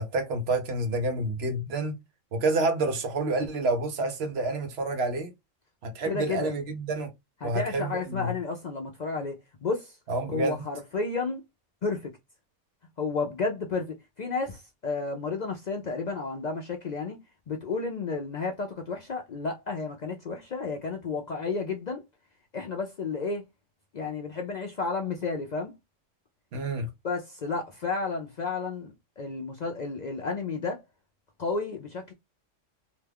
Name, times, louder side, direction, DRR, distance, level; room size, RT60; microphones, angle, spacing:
voice 1, 0.0-1.9 2.3-5.3 5.8-7.1 7.4-8.3 10.1-10.6 26.5-26.9, right 2 dB, 60° right, 0.9 m, -28 dB
voice 2, 6.0-6.5 7.4-10.0 10.3-11.4 11.8-12.1 13.0-17.2 17.5-22.0 22.5-23.4 23.9-25.7 27.0-30.8 31.4-32.1, left 4 dB, 60° left, 0.4 m, -32 dB
2.9 x 2.2 x 3.3 m
omnidirectional pair, 1.3 m